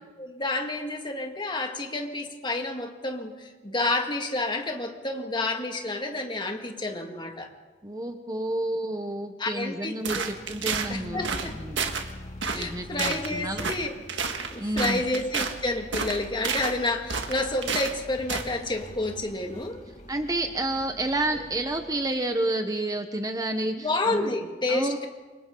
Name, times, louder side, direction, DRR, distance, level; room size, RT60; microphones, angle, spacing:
voice 1, 0.2-7.5 9.4-10.3 10.9-11.5 12.5-13.9 14.2-19.8 23.8-25.1, left 2 dB, 25° left, 3 dB, 2.0 m, -30 dB
voice 2, 7.8-11.3 11.6-11.8 12.5-13.7 14.6-15.0 20.1-24.3 24.7-25.1, right 1 dB, 20° right, 6 dB, 0.9 m, -30 dB
sound 1, 10.0-10.9 11.2-11.5 11.8-12.1 12.4-12.7 13.0-13.3 13.6-13.8 14.1-15.5 15.9-16.7 17.1-18.0 18.3-18.5, right 5 dB, 70° right, 1.7 m, -30 dB
sound 2, 10.3-22.1, left 1 dB, 40° left, 2.1 m, -44 dB
28.5 x 25.0 x 3.9 m, 1.3 s
head